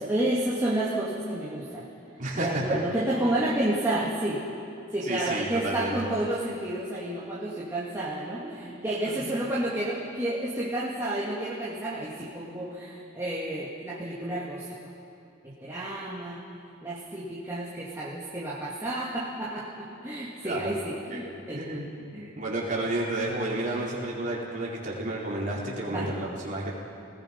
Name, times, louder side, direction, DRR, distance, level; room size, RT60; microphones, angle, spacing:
voice 1, 0.0-1.9 2.3-4.4 4.9-14.9 15.4-16.5 16.8-21.7 22.1-22.4 25.9-26.2, right 1 dB, 15° right, -7 dB, 2.1 m, -30 dB
voice 2, 2.2-2.8 5.1-6.1 9.1-9.2 20.4-20.8 21.1-22.1 22.4-26.7, right 1 dB, 35° right, -5 dB, 4.1 m, -31 dB
28.0 x 19.5 x 5.3 m, 2.8 s
head